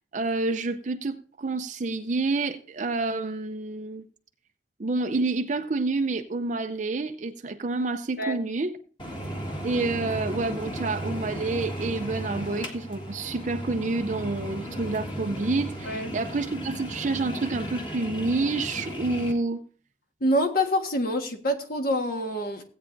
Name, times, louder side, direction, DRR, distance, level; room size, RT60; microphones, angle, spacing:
voice 1, 0.0-4.0 4.8-8.8 9.6-19.6, right 3 dB, 45° right, 0.5 m, -28 dB
sound 1, 9.0-19.3, equal, 25° left, 1.7 m, -35 dB
voice 2, 20.2-22.6, equal, 55° left, 1.5 m, -26 dB
16.5 x 8.6 x 2.6 m
head